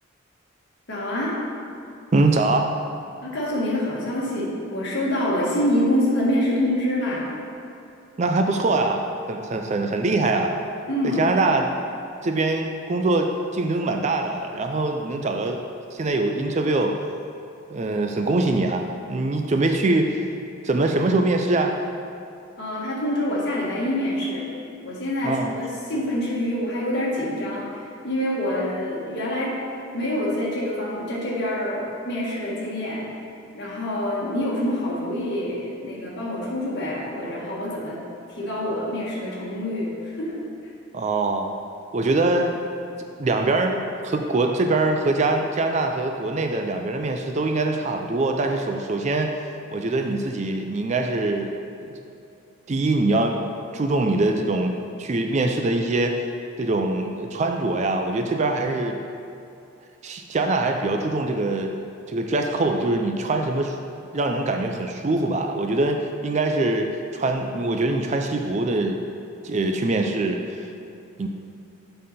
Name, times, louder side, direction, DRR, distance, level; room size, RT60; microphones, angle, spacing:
voice 1, 0.9-1.3 3.2-7.3 10.9-11.2 22.6-24.5 24.8-29.5 29.9-33.2 33.5-38.0 38.3-40.4 40.6-40.7, left 1 dB, 55° left, -5 dB, 1.7 m, -26 dB
voice 2, 2.1-2.7 8.2-10.5 11.0-11.7 12.2-15.6 15.9-16.9 17.7-20.2 20.6-21.8 25.2-25.5 40.9-41.5 41.9-42.6 43.2-49.3 49.7-51.5 51.8-51.9 52.7-53.4 53.7-56.2 56.6-59.0 60.0-61.8 62.1-63.8 64.1-66.9 67.1-69.0 69.4-70.6 71.2-71.3, right 2 dB, 35° right, 4 dB, 0.4 m, -23 dB
7.6 x 5.5 x 4.2 m, 2.7 s
head